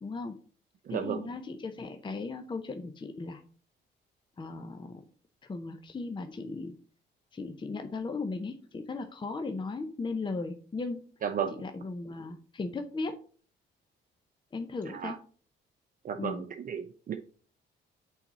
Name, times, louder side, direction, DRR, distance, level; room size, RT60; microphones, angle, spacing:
voice 1, 0.0-0.4 0.9-3.4 4.4-5.0 5.4-6.7 7.3-11.0 11.6-13.2 14.5-15.2 16.2-16.4, left 3 dB, 25° left, 6 dB, 0.6 m, -37 dB
voice 2, 0.9-1.3 11.2-11.6 14.9-15.2 16.0-17.2, right 8 dB, 45° right, 6 dB, 0.5 m, -34 dB
5.8 x 4.0 x 4.1 m, 0.42 s
cardioid pair, 90°, 20 cm